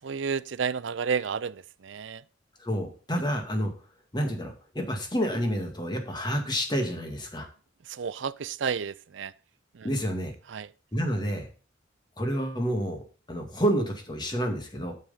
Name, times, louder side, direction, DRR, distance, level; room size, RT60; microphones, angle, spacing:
voice 1, 0.0-2.2 7.9-9.3 9.7-9.9 10.5-10.7, right 6 dB, 75° right, 0.5 m, -31 dB
voice 2, 2.6-3.7 4.1-7.5 9.8-10.3 10.9-11.5 12.2-13.0 13.3-14.9, equal, 25° left, 2.0 m, -29 dB
9.0 x 6.5 x 5.6 m
head